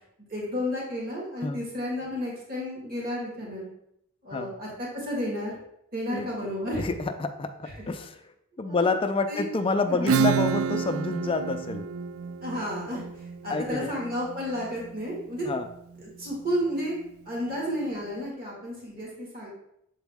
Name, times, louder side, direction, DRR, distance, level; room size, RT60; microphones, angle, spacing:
voice 1, 0.3-3.7 4.2-5.5 5.9-6.9 7.6-7.9 8.6-8.9 9.3-9.4 9.9-10.2 12.4-15.4 16.0-17.0 17.3-19.5, equal, 45° right, -4 dB, 1.9 m, -32 dB
voice 2, 6.8-8.2 8.6-11.8 13.5-13.9 15.4-15.7, left 3 dB, 25° left, 8 dB, 0.4 m, -28 dB
Acoustic guitar / Strum, 10.1-15.4, right 6 dB, 75° right, 0.3 m, -29 dB
7.2 x 4.0 x 3.5 m, 0.77 s
head